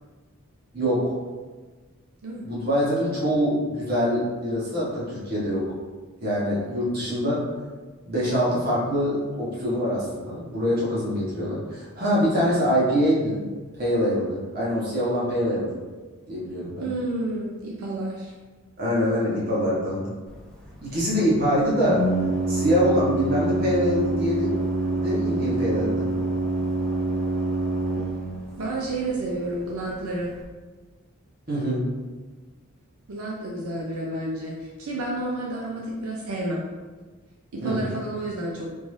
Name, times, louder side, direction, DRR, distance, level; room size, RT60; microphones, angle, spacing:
voice 1, 0.7-1.2 2.4-5.6 6.2-7.4 8.1-13.4 13.7-15.7 16.3-16.8 18.8-20.1 20.8-22.0 22.5-24.5 25.0-26.1 31.5-31.8 37.6-38.0, equal, 45° right, -7 dB, 1.2 m, -24 dB
voice 2, 16.8-18.3 28.6-30.3 33.1-36.7 37.5-38.7, right 2 dB, 85° right, -3 dB, 0.5 m, -30 dB
Organ, 20.3-30.4, right 2 dB, 5° left, 0.3 m, -28 dB
3.7 x 2.5 x 3.2 m, 1.3 s
head